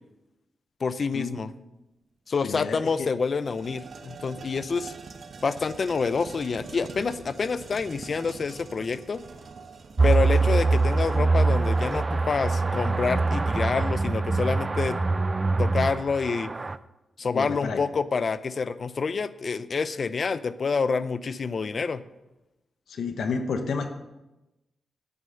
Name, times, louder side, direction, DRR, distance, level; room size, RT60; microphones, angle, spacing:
voice 1, 0.8-1.5 2.3-4.9 5.4-9.2 10.0-15.0 15.6-16.5 17.2-22.0, left 5 dB, 55° left, 15 dB, 0.6 m, -27 dB
voice 2, 2.4-3.1 17.3-17.8 22.9-23.9, left 5 dB, 80° left, 7 dB, 0.9 m, -30 dB
sound 1, 2.4-2.5 2.8-13.5, right 4 dB, 60° right, 1.1 m, -45 dB
sound 2, 10.0-16.8, right 3 dB, 35° right, 0.5 m, -24 dB
9.6 x 9.3 x 6.6 m, 0.99 s
cardioid pair, 65°, 0 cm